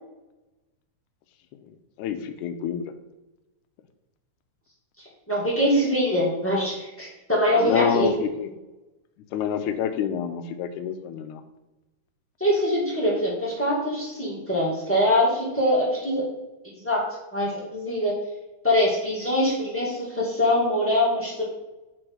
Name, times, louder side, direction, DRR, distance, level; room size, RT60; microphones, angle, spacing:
voice 1, 2.0-2.8 7.6-8.5 9.3-11.4, left 8 dB, 80° left, 8 dB, 2.0 m, -27 dB
voice 2, 5.3-8.1 12.4-16.2 16.8-17.0 17.3-18.1 18.6-21.5, left 1 dB, 5° left, -6 dB, 1.2 m, -23 dB
7.6 x 4.3 x 4.7 m, 1.0 s
omnidirectional pair, 3.7 m